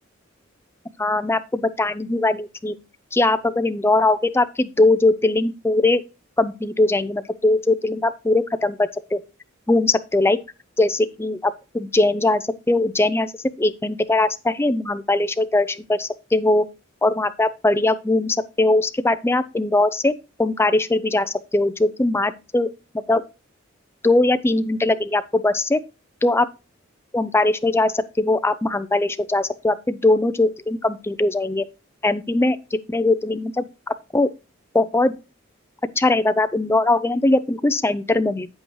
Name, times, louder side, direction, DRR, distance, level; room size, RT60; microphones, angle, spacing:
voice 1, 1.0-2.7 3.1-6.0 6.4-9.2 9.7-10.4 10.8-13.3 13.6-16.6 17.0-20.1 20.4-22.7 23.1-23.2 24.0-25.8 26.2-26.5 27.1-31.7 32.0-34.3 34.7-35.1 36.0-38.5, left 2 dB, 10° left, 0.4 m, -20 dB
8.6 x 7.9 x 3.0 m
head